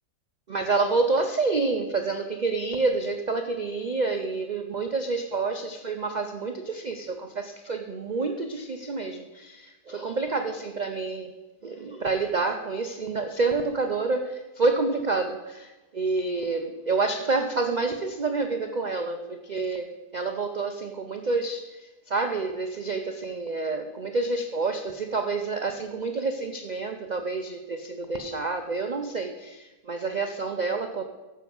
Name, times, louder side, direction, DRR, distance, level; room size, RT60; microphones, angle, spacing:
voice 1, 0.5-11.3 11.6-19.9 20.1-31.0, right 3 dB, 70° right, 5 dB, 0.4 m, -28 dB
9.4 x 7.4 x 5.3 m, 1.1 s
omnidirectional pair, 1.7 m